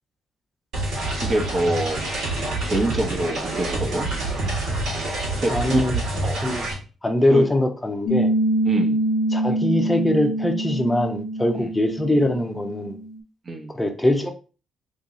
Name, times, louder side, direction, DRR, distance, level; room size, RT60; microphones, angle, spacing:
sound 1, 0.7-6.7, right 2 dB, 85° right, 1.7 m, -27 dB
voice 1, 1.2-2.0 2.6-4.1 5.4-5.8 6.2-6.4 7.3-7.4 8.6-9.0 11.5-11.7 13.5-13.8, right 1 dB, 40° right, 3 dB, 0.8 m, -25 dB
voice 2, 5.5-6.0 6.4-6.6 7.0-8.3 9.3-13.0 13.7-14.3, left 1 dB, 10° left, 4 dB, 0.6 m, -22 dB
Piano, 8.1-13.2, right 1 dB, 65° left, 0.5 m, -25 dB
3.1 x 2.7 x 3.6 m, 0.35 s
cardioid pair, 90°, 0 cm